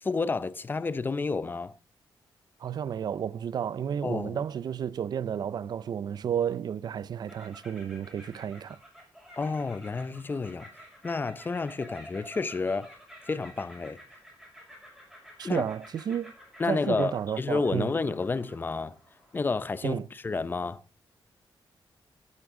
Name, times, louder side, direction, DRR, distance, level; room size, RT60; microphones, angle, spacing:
voice 1, 0.0-1.7 4.0-4.4 9.4-10.7 11.0-12.9 13.3-14.0 15.4-15.7 16.6-19.0 19.3-20.8, left 4 dB, 25° left, 0.5 m, -30 dB
voice 2, 2.6-8.8 15.4-16.3 16.7-17.9 19.8-20.1, right 8 dB, 55° right, 0.4 m, -32 dB
sound 1, 7.3-19.8, equal, 5° right, 5.9 m, -51 dB
12.0 x 10.5 x 3.7 m
wide cardioid pair, 160°, 8 cm